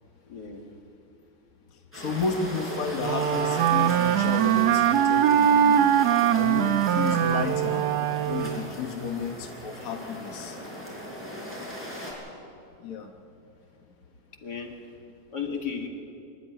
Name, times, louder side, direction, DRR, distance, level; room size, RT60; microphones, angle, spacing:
voice 1, 0.3-0.6 11.3-11.7 14.4-14.8 15.3-15.9, left 6 dB, 80° left, 3 dB, 2.6 m, -35 dB
voice 2, 1.9-7.9 8.2-10.7 12.8-13.1, left 5 dB, 60° left, 5 dB, 1.5 m, -32 dB
sound 1, 1.9-12.1, equal, 5° left, 5.1 m, -39 dB
Wind instrument woodwind instrument, 3.0-8.7, right 10 dB, 80° right, 1.3 m, -22 dB
24.5 x 11.5 x 10.0 m, 2.6 s
omnidirectional pair, 1.7 m